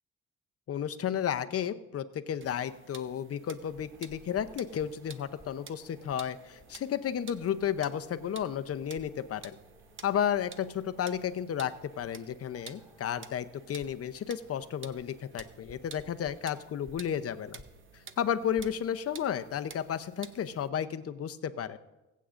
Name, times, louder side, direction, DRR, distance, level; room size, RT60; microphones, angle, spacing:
voice 1, 0.7-9.6 10.0-17.6 18.2-21.8, left 9 dB, 50° left, 10 dB, 0.7 m, -33 dB
sound 1, 2.4-20.7, right 6 dB, 40° right, 0.8 m, -52 dB
sound 2, 3.6-18.7, equal, 10° right, 4.5 m, -59 dB
21.0 x 8.4 x 2.5 m, 1.0 s
cardioid pair, 90°, 30 cm